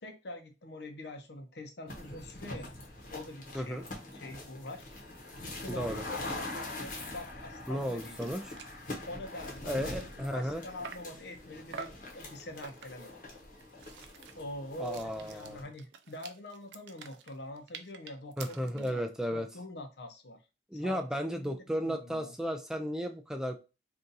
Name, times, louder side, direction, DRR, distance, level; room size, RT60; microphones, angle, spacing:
voice 1, 0.0-2.7 3.1-4.9 5.4-8.4 9.1-13.1 14.3-19.0 19.3-20.4 20.7-21.1 21.4-22.3, left 1 dB, 75° left, 5 dB, 0.7 m, -45 dB
sound 1, 1.9-15.6, left 2 dB, 50° left, 0.9 m, -44 dB
voice 2, 5.7-6.0 7.7-8.4 9.6-10.6 14.8-15.6 18.4-19.5 20.7-23.5, equal, 5° right, 5 dB, 0.3 m, -34 dB
sound 2, 7.9-8.0 8.2-8.3 8.6-8.8 9.2-11.2 11.7-12.1 12.6-13.1 13.6-19.0, right 6 dB, 85° right, 0.4 m, -48 dB
2.7 x 2.4 x 3.9 m, 0.29 s
head